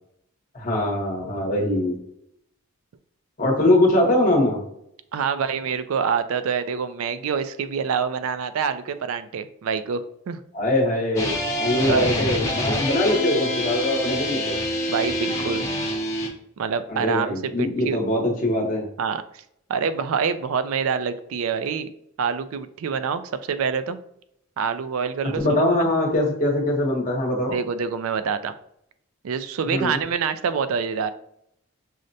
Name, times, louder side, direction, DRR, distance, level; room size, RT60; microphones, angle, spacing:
voice 1, 0.5-2.0 3.4-4.6 10.5-14.6 16.9-18.9 25.3-27.6 29.6-30.0, left 1 dB, 35° left, -2 dB, 0.9 m, -22 dB
voice 2, 5.1-10.4 11.8-12.1 14.9-15.6 16.6-18.0 19.0-19.2 19.7-21.9 22.2-24.0 24.6-25.9 27.5-28.5 29.2-31.1, right 6 dB, 70° right, 12 dB, 0.3 m, -26 dB
sound 1, 11.2-16.3, left 1 dB, 15° left, 0.6 m, -26 dB
6.2 x 2.1 x 2.6 m, 0.73 s
head